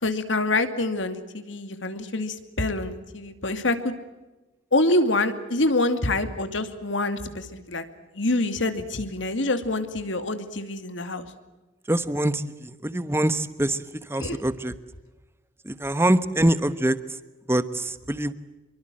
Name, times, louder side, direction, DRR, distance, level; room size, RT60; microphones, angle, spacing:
voice 1, 0.0-3.9 4.7-7.8 8.1-11.2 14.2-14.4, left 2 dB, 75° left, 9 dB, 2.5 m, -26 dB
voice 2, 11.9-13.8 14.1-14.7 15.6-17.0 17.5-18.3, right 1 dB, 15° right, 13 dB, 1.1 m, -24 dB
26.5 x 23.5 x 7.7 m, 1.1 s
head